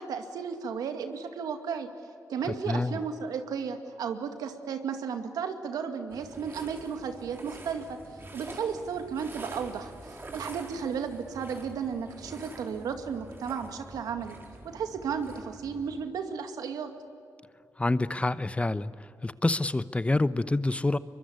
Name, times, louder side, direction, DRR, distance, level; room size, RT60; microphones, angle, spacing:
voice 1, 0.0-1.9 2.3-7.9 8.3-14.4 14.6-16.9, right 6 dB, 85° right, 7 dB, 2.3 m, -34 dB
voice 2, 2.7-3.0 17.8-18.9 19.2-21.0, left 2 dB, 20° left, 15 dB, 0.9 m, -27 dB
sound 1, 6.1-16.1, right 2 dB, 35° right, 4.6 m, -46 dB
23.5 x 23.0 x 9.8 m, 2.5 s
cardioid pair, 60°, 6 cm